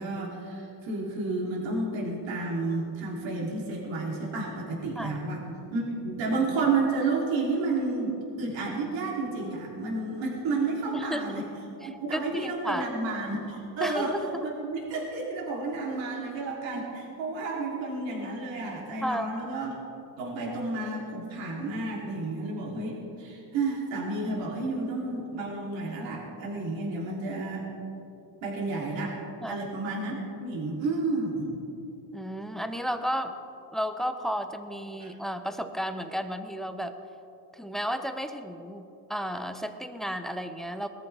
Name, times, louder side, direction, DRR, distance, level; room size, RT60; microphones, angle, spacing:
voice 1, 0.0-5.4 5.7-11.5 11.8-14.1 14.4-19.7 20.2-27.7 28.4-29.2 29.5-31.5 35.0-35.1, right 3 dB, 70° right, -3 dB, 3.4 m, -31 dB
voice 2, 10.9-11.5 11.8-12.9 13.8-14.5 19.0-19.3 29.4-29.6 32.1-33.4 33.7-37.0 37.5-40.9, equal, ahead, 8 dB, 0.7 m, -33 dB
21.0 x 14.0 x 3.5 m, 2.9 s
cardioid pair, 125°, 47 cm